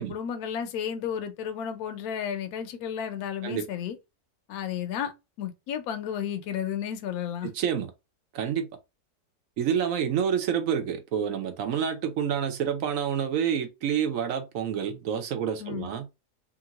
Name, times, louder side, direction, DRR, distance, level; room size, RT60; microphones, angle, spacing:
voice 1, 0.0-4.0 4.5-5.1 5.4-7.5 15.6-15.9, left 8 dB, 75° left, 1.0 m, -32 dB
voice 2, 7.4-7.9 8.3-8.7 9.6-16.1, right 8 dB, 65° right, 0.9 m, -28 dB
2.9 x 2.5 x 2.8 m
omnidirectional pair, 1.6 m